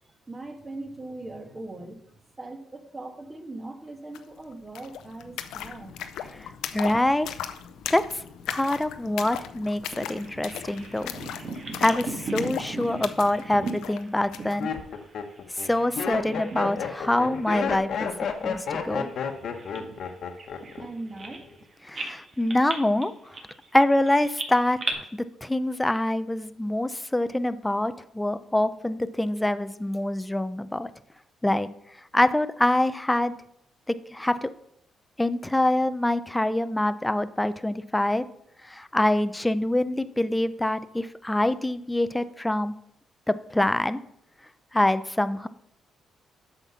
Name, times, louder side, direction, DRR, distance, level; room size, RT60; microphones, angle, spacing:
voice 1, 0.3-2.0 2.4-6.0 20.8-21.5 22.0-22.2, right 2 dB, 25° right, 6 dB, 1.4 m, -40 dB
sound 1, 4.1-4.2 4.5-14.6, left 9 dB, 85° left, 0.6 m, -38 dB
voice 2, 6.3-7.3 7.9-11.1 11.8-14.7 15.5-18.1 18.4-19.1 21.8-23.4 23.7-30.9 31.4-31.7 32.1-33.4 33.9-34.5 35.2-38.2 38.6-42.7 43.3-44.0 44.7-45.5, left 1 dB, 10° left, 12 dB, 0.5 m, -25 dB
Bird vocalization bird call bird song, 9.9-15.9 16.2-17.1 17.4-17.6 18.2-21.6 21.9-24.9, right 3 dB, 45° right, 1.7 m, -38 dB
Laughter, 13.2-13.6 14.2-20.9 21.1-21.6, left 7 dB, 65° left, 1.1 m, -31 dB
8.1 x 5.8 x 5.7 m, 0.73 s
cardioid pair, 90°, 0 cm